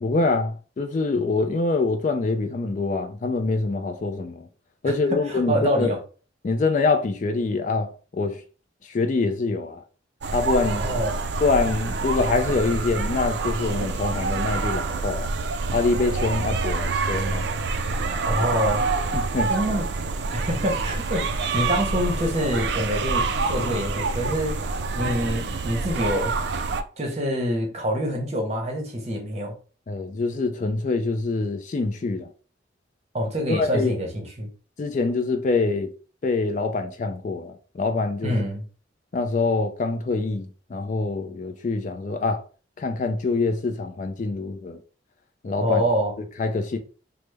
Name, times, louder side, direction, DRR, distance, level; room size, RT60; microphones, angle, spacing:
voice 1, 0.0-4.5 4.8-5.9 6.4-8.4 8.9-9.8 10.3-10.8 11.4-15.3 15.7-17.5 18.4-18.5 19.1-19.5 29.9-32.3 33.5-34.0 34.8-35.9 36.2-38.4 39.1-42.4 42.8-44.8 45.4-45.8 46.4-46.8, left 3 dB, 40° left, 0.3 m, -25 dB
voice 2, 5.3-6.0 10.7-11.2 18.2-18.8 19.5-19.8 20.3-21.2 21.5-24.6 24.9-26.3 27.0-29.5 33.1-34.5 38.2-38.6 45.6-46.1, equal, 35° right, 0.8 m, -26 dB
sound 1, 10.2-26.8, right 3 dB, 60° right, 0.3 m, -27 dB
3.2 x 2.0 x 3.2 m
head